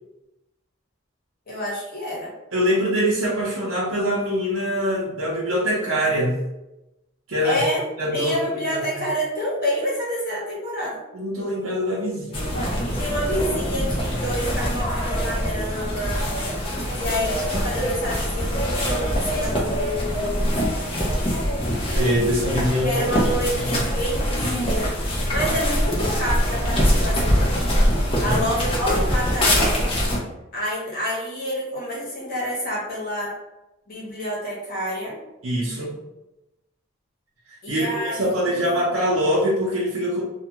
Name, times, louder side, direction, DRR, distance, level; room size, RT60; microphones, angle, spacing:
voice 1, 1.5-2.3 7.4-7.8 8.1-11.0 13.0-16.2 16.9-20.5 22.8-24.9 25.3-27.6 28.2-30.0 30.5-33.3 33.9-35.2 37.6-38.8, equal, 50° left, -5 dB, 1.2 m, -28 dB
voice 2, 2.5-6.4 7.3-7.6 8.0-8.4 8.7-8.8 11.1-12.7 21.9-23.0 23.5-23.7 28.1-28.4 35.4-35.9 37.7-37.9 38.2-40.2, equal, 75° right, -7 dB, 0.7 m, -23 dB
sound 1, 12.3-30.2, equal, 30° left, 0.6 m, -23 dB
2.5 x 2.3 x 2.9 m, 0.93 s
head